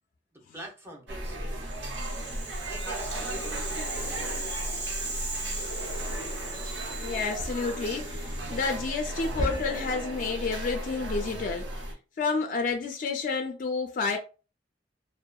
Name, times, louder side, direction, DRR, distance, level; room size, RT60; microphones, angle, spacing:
voice 1, 0.3-1.9 2.6-5.7, right 1 dB, 15° right, 0.6 m, -47 dB
sound 1, 1.1-11.9, right 1 dB, 75° right, 0.7 m, -35 dB
Rattle (instrument), 1.6-9.8, right 2 dB, 60° right, 1.1 m, -39 dB
sound 2, 3.8-11.4, equal, 30° right, 1.3 m, -45 dB
voice 2, 7.0-11.9 12.2-14.2, left 4 dB, 45° left, 0.3 m, -30 dB
2.7 x 2.1 x 2.2 m
head